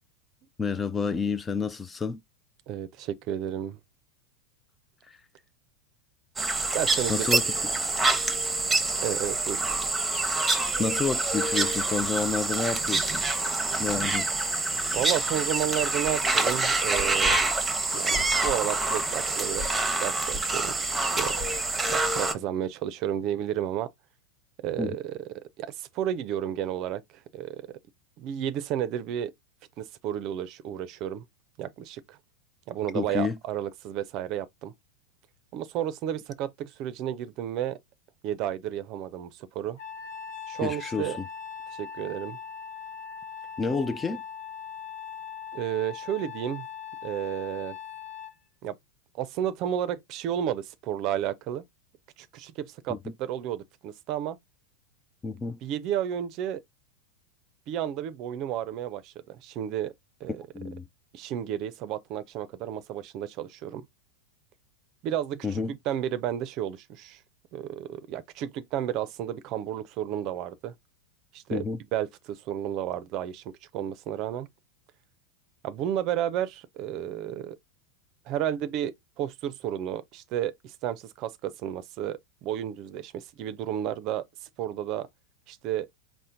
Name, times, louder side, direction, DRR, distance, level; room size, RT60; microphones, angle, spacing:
voice 1, 0.6-2.2 5.1-5.2 7.1-7.4 10.8-13.2 13.8-14.3 24.8-25.0 32.9-33.4 40.6-41.3 43.6-44.2 52.9-53.0 55.2-55.6 60.5-60.9 65.4-65.7 71.5-71.8, left 4 dB, 20° left, 0.4 m, -29 dB
voice 2, 2.7-3.8 6.7-7.4 9.0-9.7 14.9-17.4 17.9-19.7 20.0-21.3 21.9-23.9 24.6-25.2 25.6-27.0 27.3-27.6 28.2-29.3 29.8-31.2 31.6-32.2 32.7-34.7 35.5-37.8 38.2-39.8 40.5-41.2 41.7-42.4 45.5-46.7 47.0-47.8 48.6-48.8 49.2-51.6 52.2-54.4 55.6-56.6 57.7-59.9 60.2-60.4 61.1-63.9 65.0-67.2 67.5-70.7 71.3-71.7 71.9-73.4 73.7-74.5 75.6-77.6 78.3-85.1 85.5-85.9, right 11 dB, 45° right, 0.5 m, -32 dB
sound 1, 6.4-22.3, right 3 dB, 10° right, 0.9 m, -26 dB
Trumpet, 39.8-48.3, left 7 dB, 55° left, 1.1 m, -40 dB
4.3 x 2.1 x 3.7 m
hypercardioid pair, 95°, 0 cm